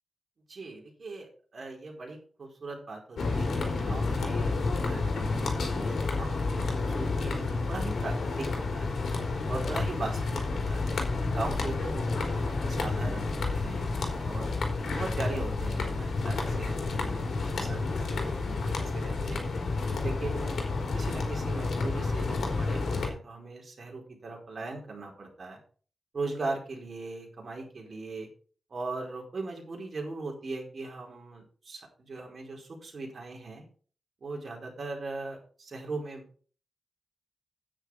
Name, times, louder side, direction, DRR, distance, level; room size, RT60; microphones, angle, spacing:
voice 1, 0.5-8.9 9.5-10.9 11.3-14.5 14.9-17.3 17.6-19.5 20.0-20.6 20.9-25.6 26.1-28.3 28.7-33.6 34.2-36.3, right 3 dB, 50° right, 0 dB, 4.8 m, -39 dB
sound 1, 3.2-23.1, left 3 dB, 80° left, 3.8 m, -30 dB
10.0 x 9.1 x 4.8 m, 0.41 s
wide cardioid pair, 100°, 0 cm